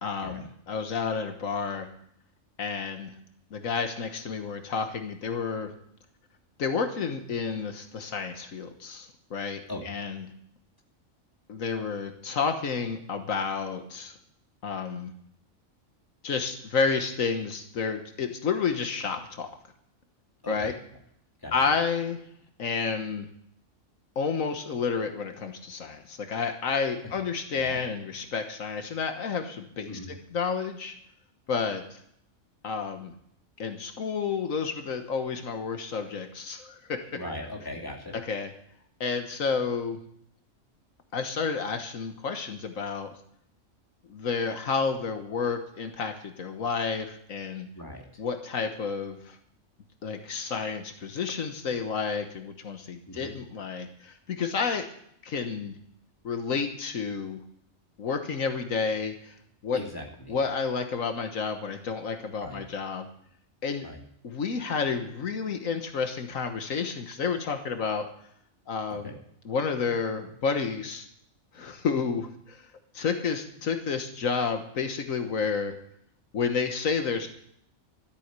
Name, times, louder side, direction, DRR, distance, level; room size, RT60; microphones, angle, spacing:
voice 1, 0.0-0.4 0.7-1.9 2.6-3.1 3.5-5.7 6.6-10.2 11.5-14.2 14.6-15.1 16.2-19.5 20.5-20.7 21.5-22.2 22.6-23.3 24.1-30.0 30.3-30.9 31.5-32.0 32.6-33.1 33.6-37.2 38.1-38.5 39.0-40.0 41.1-43.1 44.1-47.7 48.2-49.4 50.0-54.9 55.2-55.7 56.2-57.4 58.0-59.3 59.6-59.8 60.3-63.1 63.6-63.9 64.2-68.1 68.7-69.1 69.4-71.1 71.5-72.6 72.9-75.7 76.3-77.3, left 5 dB, 85° left, 7 dB, 1.7 m, -30 dB
voice 2, 20.4-20.7 21.4-21.5 27.6-27.8 29.9-30.1 37.1-38.1 47.7-48.2 53.1-53.3 59.7-60.4 62.4-62.6 63.8-64.0 68.9-69.1, left 1 dB, 15° left, 0 dB, 2.6 m, -39 dB
13.5 x 8.6 x 8.2 m, 0.69 s
omnidirectional pair, 1.4 m